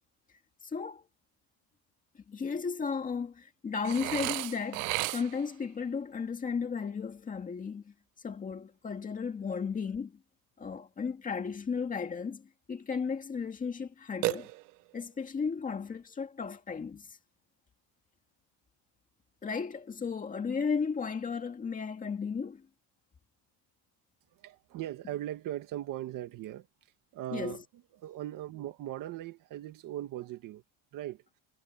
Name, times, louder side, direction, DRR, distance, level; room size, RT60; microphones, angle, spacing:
voice 1, 0.7-1.0 2.3-7.9 8.2-10.1 10.6-14.5 14.9-17.2 19.4-22.6 27.3-27.6, left 5 dB, 15° left, 2.1 m, -34 dB
Burping eructation, 3.8-5.6 14.2-15.0, right 22 dB, 65° right, 1.0 m, -34 dB
voice 2, 24.4-26.7 27.1-27.6 27.9-30.6 30.9-31.2, right 13 dB, 40° right, 1.9 m, -39 dB
cardioid pair, 180°, 50 cm